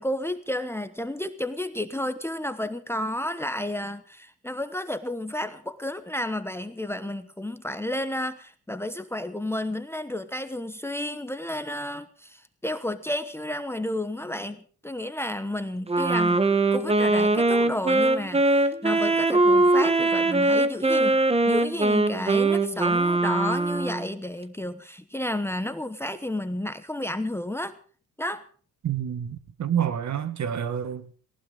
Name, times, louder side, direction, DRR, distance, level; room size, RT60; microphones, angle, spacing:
voice 1, 0.0-21.2 21.4-27.7 28.2-28.4, left 1 dB, 5° left, 1.0 m, -32 dB
Wind instrument woodwind instrument, 15.9-24.1, right 2 dB, 15° right, 1.2 m, -22 dB
voice 2, 28.8-31.1, right 9 dB, 45° right, 1.6 m, -28 dB
18.5 x 18.5 x 3.8 m
cardioid pair, 120°, 38 cm